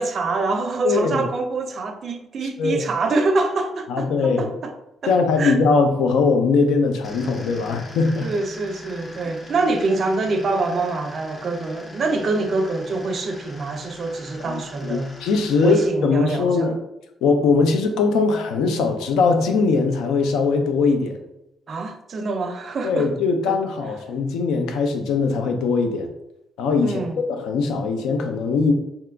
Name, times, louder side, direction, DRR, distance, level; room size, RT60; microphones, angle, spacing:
voice 1, 0.0-4.7 5.0-5.6 8.2-15.1 15.6-16.7 21.7-23.1 23.5-23.6 26.8-27.2, right 3 dB, 50° right, 0.4 m, -25 dB
voice 2, 0.8-1.2 2.6-2.8 3.9-4.5 5.1-8.3 14.5-16.8 17.2-21.2 22.8-26.1 26.6-27.0 27.3-28.7, left 4 dB, 85° left, 0.4 m, -20 dB
sound 1, 7.0-15.9, left 1 dB, 25° left, 0.5 m, -41 dB
2.9 x 2.3 x 3.3 m
cardioid pair, 90°, 0 cm